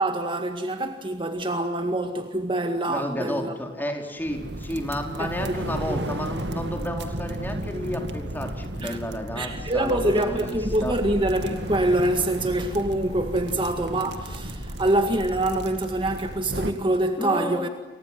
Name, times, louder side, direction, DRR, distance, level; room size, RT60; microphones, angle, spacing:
voice 1, 0.0-3.5 5.2-5.3 5.9-6.0 8.8-9.0 9.4-17.7, right 1 dB, 30° right, 1.9 m, -25 dB
voice 2, 2.8-10.9 17.2-17.7, left 1 dB, 10° left, 4.4 m, -32 dB
sound 1, 4.2-16.7, right 1 dB, 75° right, 2.4 m, -34 dB
sound 2, 9.5-16.4, equal, 40° left, 7.2 m, -39 dB
30.0 x 25.0 x 7.6 m
head